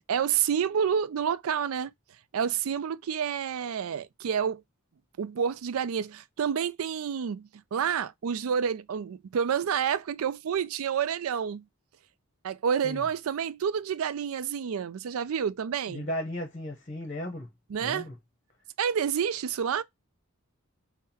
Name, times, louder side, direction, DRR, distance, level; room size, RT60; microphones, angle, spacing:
voice 1, 0.1-1.9 2.3-4.6 5.2-11.6 12.4-16.1 17.7-18.1 18.8-19.8, right 7 dB, 75° right, 0.4 m, -29 dB
voice 2, 15.9-17.5 17.8-18.1, left 1 dB, 35° left, 0.8 m, -35 dB
5.6 x 2.2 x 2.8 m
head